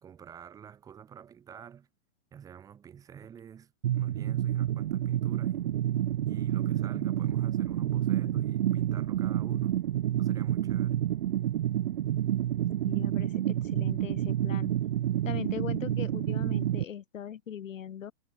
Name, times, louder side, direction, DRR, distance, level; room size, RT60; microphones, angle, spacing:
voice 1, 0.0-1.9 2.3-5.7 6.3-9.9 10.2-11.1, right 8 dB, 10° right, 1.8 m, -48 dB
sound 1, 3.8-16.8, right 12 dB, 45° right, 0.9 m, -29 dB
voice 2, 12.9-14.7 15.2-18.1, left 9 dB, 80° left, 2.0 m, -40 dB
hypercardioid pair, 170°, 38 cm